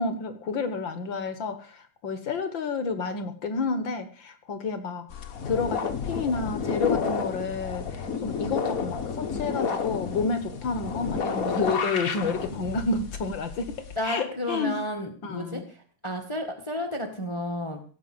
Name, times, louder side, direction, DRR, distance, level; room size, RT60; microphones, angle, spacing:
voice 1, 0.0-13.7 14.0-14.8 15.2-15.6, left 4 dB, 65° left, 9 dB, 1.2 m, -30 dB
sound 1, 5.1-14.0, left 5 dB, 80° left, 0.7 m, -31 dB
voice 2, 13.9-17.8, left 1 dB, 35° left, 4 dB, 0.5 m, -32 dB
17.0 x 7.4 x 7.8 m, 0.42 s
omnidirectional pair, 3.8 m